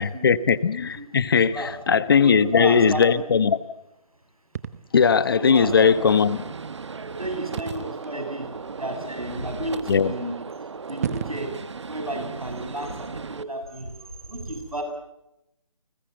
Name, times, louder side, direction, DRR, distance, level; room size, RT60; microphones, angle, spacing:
voice 1, 0.0-3.6 4.9-6.4 9.9-10.1, left 6 dB, 40° left, 15 dB, 1.1 m, -19 dB
voice 2, 1.4-1.7 2.1-3.2 5.3-6.1 7.0-10.6 10.9-14.8, right 1 dB, 90° right, 5 dB, 7.9 m, -33 dB
sound 1, 4.5-4.9 7.6-8.1 9.0-9.1 10.5-10.6 10.9-11.6, right 8 dB, 25° right, 1.0 m, -32 dB
Gunshot gunfire, 5.5-13.4, right 5 dB, 55° right, 1.1 m, -37 dB
29.5 x 20.5 x 8.0 m, 0.88 s
figure-of-eight pair, 150°, 18 cm